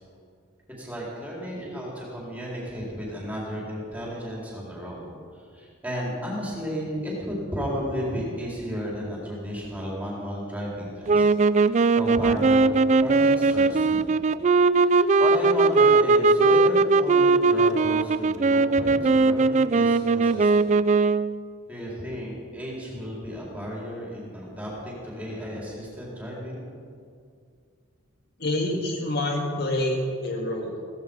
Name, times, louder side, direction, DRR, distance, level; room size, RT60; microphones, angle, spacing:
voice 1, 0.8-5.1 5.3-11.3 11.7-12.7 13.0-14.0 14.7-20.7 21.7-26.6, equal, 5° right, -5 dB, 4.2 m, -33 dB
sound 1, 11.1-21.4, right 3 dB, 35° right, 0.3 m, -20 dB
voice 2, 28.4-30.8, left 1 dB, 50° left, 1 dB, 1.9 m, -27 dB
16.5 x 15.5 x 5.4 m, 2.3 s
head